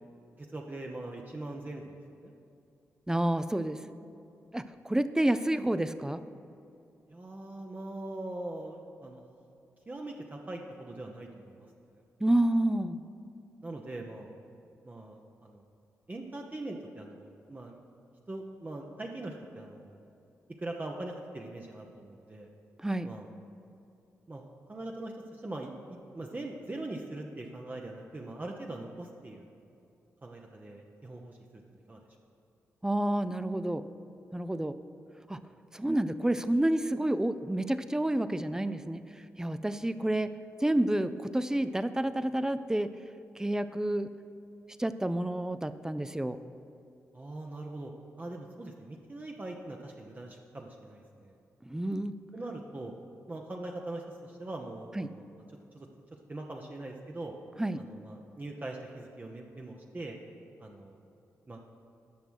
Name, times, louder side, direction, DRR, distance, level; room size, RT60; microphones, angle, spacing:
voice 1, 0.4-2.3 7.1-9.2 9.9-12.0 13.6-14.3 14.8-15.6 16.1-17.8 18.3-20.0 20.6-22.5 23.0-23.3 24.3-24.4 24.7-25.7 26.1-29.5 30.2-32.0 47.1-47.9 48.2-51.3 52.3-52.9 53.3-55.3 55.7-55.9 56.3-57.3 57.8-60.2 60.6-61.0 61.5-61.6, right 2 dB, 30° right, 0 dB, 0.9 m, -42 dB
voice 2, 3.1-3.8 4.5-6.2 12.2-13.0 22.8-23.1 32.8-33.8 34.3-34.8 35.3-35.4 35.7-39.0 39.4-40.3 40.6-42.9 43.4-44.1 44.8-46.4 51.6-52.2 55.0-55.1 57.6-57.8, right 1 dB, 10° right, 12 dB, 0.5 m, -29 dB
10.5 x 6.0 x 6.3 m, 2.6 s
cardioid pair, 60°, 6 cm